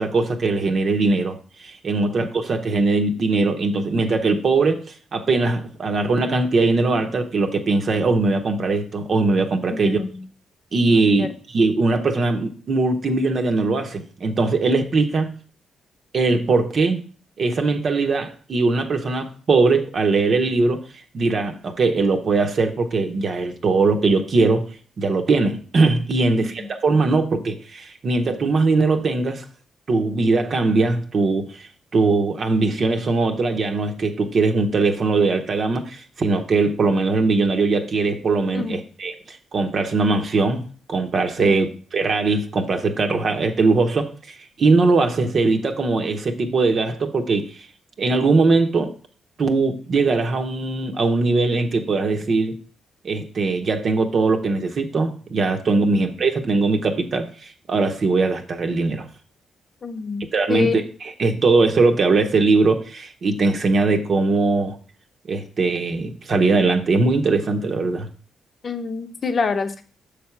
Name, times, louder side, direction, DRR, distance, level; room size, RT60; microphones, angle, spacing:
voice 1, 0.0-4.8 5.1-10.0 10.7-15.3 16.1-17.0 17.4-20.8 21.1-24.7 25.0-29.4 29.9-47.6 48.0-48.9 49.4-52.5 53.0-59.1 60.3-60.7 61.2-64.8 65.3-68.1, right 3 dB, 55° right, 5 dB, 0.9 m, -20 dB
voice 2, 9.7-10.3 11.2-11.3 26.2-26.7 38.5-38.8 41.4-41.6 55.8-55.9 59.8-60.8 68.6-69.8, left 5 dB, 50° left, 8 dB, 0.7 m, -27 dB
6.5 x 3.4 x 5.8 m, 0.41 s
supercardioid pair, 65°, 0 cm